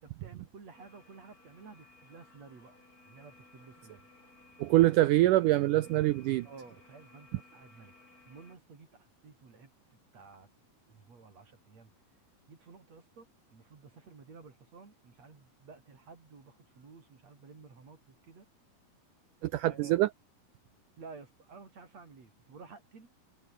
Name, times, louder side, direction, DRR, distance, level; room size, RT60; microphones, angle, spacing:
voice 1, 0.0-2.8 3.1-4.1 6.4-7.9 8.3-10.5 10.9-11.9 12.5-18.5 19.6-20.0 21.0-23.1, right 4 dB, 45° right, 4.9 m, -53 dB
sound 1, 0.7-8.6, left 2 dB, 20° left, 4.9 m, -59 dB
voice 2, 4.6-6.5 19.4-20.1, right 16 dB, 90° right, 1.8 m, -24 dB
omnidirectional pair, 4.6 m